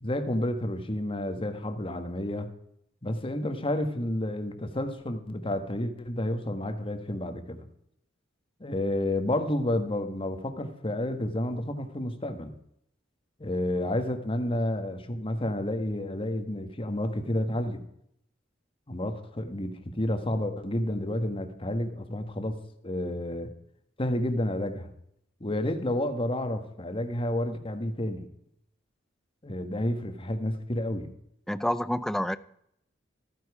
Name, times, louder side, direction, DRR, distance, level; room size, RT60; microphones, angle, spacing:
voice 1, 0.0-2.5 3.0-7.6 8.6-12.5 13.4-17.8 18.9-22.6 22.8-23.5 24.0-24.9 25.4-28.3 29.4-31.1, left 1 dB, 30° left, 8 dB, 1.4 m, -30 dB
voice 2, 31.5-32.4, equal, ahead, 15 dB, 0.4 m, -28 dB
14.0 x 9.7 x 4.8 m, 0.74 s
head